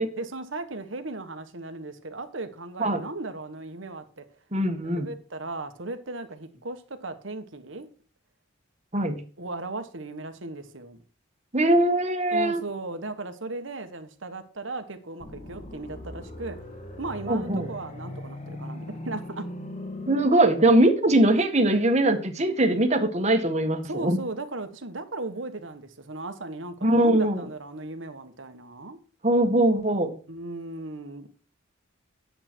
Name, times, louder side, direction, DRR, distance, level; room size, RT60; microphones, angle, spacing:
voice 1, 0.2-4.2 4.8-7.9 9.4-11.0 12.3-16.6 17.0-19.4 23.8-29.0 30.3-31.3, right 2 dB, 70° right, 1.5 m, -36 dB
voice 2, 4.5-5.1 8.9-9.2 11.5-12.6 17.3-17.7 20.1-24.2 26.8-27.4 29.2-30.1, right 1 dB, 35° right, 1.6 m, -21 dB
sound 1, 15.2-20.2, left 1 dB, 35° left, 1.6 m, -39 dB
10.5 x 7.8 x 4.6 m
head